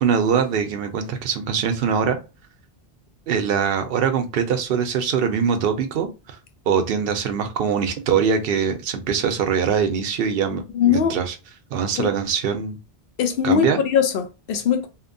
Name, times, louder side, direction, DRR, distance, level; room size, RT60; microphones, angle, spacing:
voice 1, 0.0-2.2 3.3-6.1 6.7-11.3 11.7-12.8 13.4-13.8, right 7 dB, 70° right, 0.8 m, -22 dB
voice 2, 10.7-11.2 12.0-12.1 13.2-14.9, left 8 dB, 70° left, 0.8 m, -20 dB
2.8 x 2.1 x 2.5 m
omnidirectional pair, 1.0 m